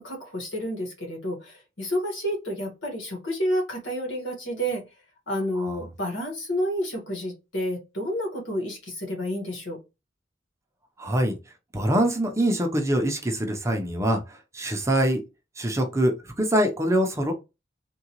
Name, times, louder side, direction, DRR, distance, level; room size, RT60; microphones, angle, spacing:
voice 1, 0.0-4.8 5.3-9.8, equal, 90° left, 1.5 m, -30 dB
voice 2, 11.0-11.4 11.7-15.2 15.6-17.3, right 1 dB, 15° right, 0.6 m, -24 dB
3.7 x 2.3 x 2.9 m
head